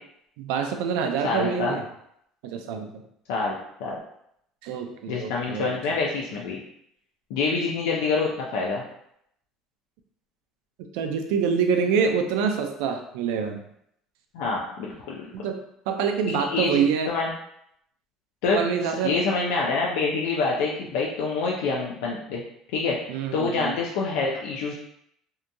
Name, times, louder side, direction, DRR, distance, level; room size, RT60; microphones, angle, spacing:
voice 1, 0.4-1.8 2.4-3.0 4.6-5.7 10.9-13.6 15.3-15.6 15.9-17.1 18.5-19.1 23.1-23.8, right 6 dB, 90° right, 5 dB, 0.3 m, -26 dB
voice 2, 1.2-1.8 3.3-4.0 5.1-6.6 7.3-8.8 14.3-15.3 16.3-17.3 18.4-18.6 19.0-22.4 22.7-23.0 23.3-24.7, left 4 dB, 90° left, -3 dB, 0.4 m, -26 dB
2.7 x 2.5 x 2.2 m, 0.74 s
cardioid pair, 130°, 0 cm